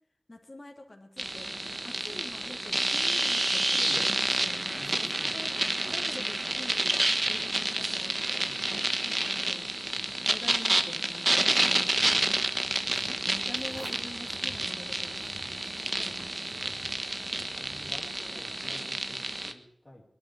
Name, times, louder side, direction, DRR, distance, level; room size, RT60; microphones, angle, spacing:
voice 1, 0.3-1.5 1.8-5.5 5.9-7.0 7.2-8.5 9.0-9.7 10.2-12.3 13.1-16.8 17.3-17.9, left 2 dB, 45° left, 2 dB, 3.2 m, -46 dB
sound 1, 1.2-19.5, right 1 dB, 35° right, 1.3 m, -29 dB
voice 2, 3.7-4.5 4.8-5.5 7.2-7.4 8.5-9.0 9.9-10.3 11.4-11.5 12.8-13.5 15.2-15.4 16.4-16.8 17.5-20.0, left 1 dB, 25° left, -7 dB, 3.8 m, -50 dB
sound 2, 11.3-18.6, right 1 dB, 75° right, 5.8 m, -51 dB
22.0 x 12.0 x 4.7 m, 0.69 s
wide cardioid pair, 65°, 0 cm